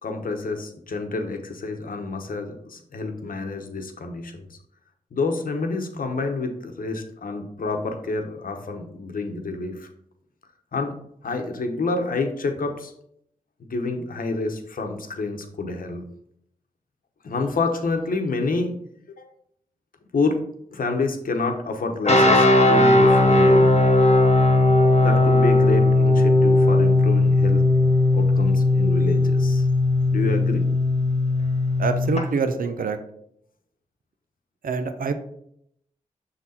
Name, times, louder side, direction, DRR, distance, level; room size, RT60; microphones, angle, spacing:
voice 1, 0.0-4.6 5.1-9.9 10.7-10.9 11.2-12.9 13.6-16.0 17.2-18.7 19.2-19.3 20.1-20.5 20.7-23.7 25.0-27.6 28.1-29.7 30.1-30.7, left 3 dB, 70° left, 4 dB, 1.0 m, -28 dB
sound 1, 22.1-32.2, left 2 dB, 45° left, 1.1 m, -17 dB
voice 2, 31.8-33.0 34.6-35.1, right 4 dB, 75° right, 9 dB, 0.6 m, -25 dB
6.1 x 4.0 x 4.2 m, 0.71 s
cardioid pair, 45°, 15 cm